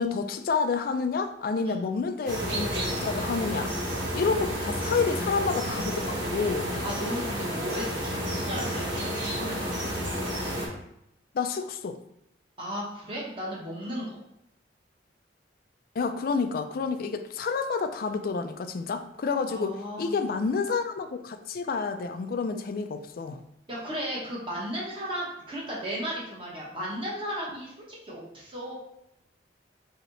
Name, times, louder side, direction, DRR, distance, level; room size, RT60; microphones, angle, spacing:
voice 1, 0.0-3.7 4.1-6.7 11.3-12.0 16.0-23.4, left 4 dB, 50° left, 8 dB, 0.3 m, -29 dB
sound 1, 2.3-10.7, equal, 85° right, 1.1 m, -31 dB
voice 2, 6.8-9.9 12.6-14.2 19.4-20.3 23.7-27.7 28.0-28.7, equal, 25° right, -5 dB, 1.1 m, -35 dB
3.1 x 2.8 x 3.9 m, 0.79 s
head